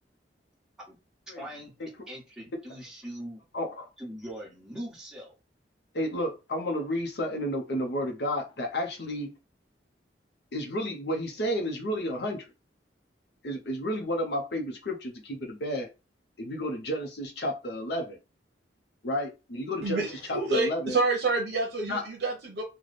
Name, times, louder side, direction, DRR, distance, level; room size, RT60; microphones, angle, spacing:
voice 1, 1.3-1.7 2.1-3.4 4.0-5.3, equal, 5° right, 1.2 m, -41 dB
voice 2, 3.5-3.9 5.9-9.3 10.5-12.5 13.4-15.9 16.4-18.2 19.0-20.0 20.3-21.0 21.9-22.0, equal, 65° left, 0.7 m, -31 dB
voice 3, 19.8-22.6, right 3 dB, 70° right, 0.8 m, -28 dB
3.2 x 2.2 x 4.0 m
head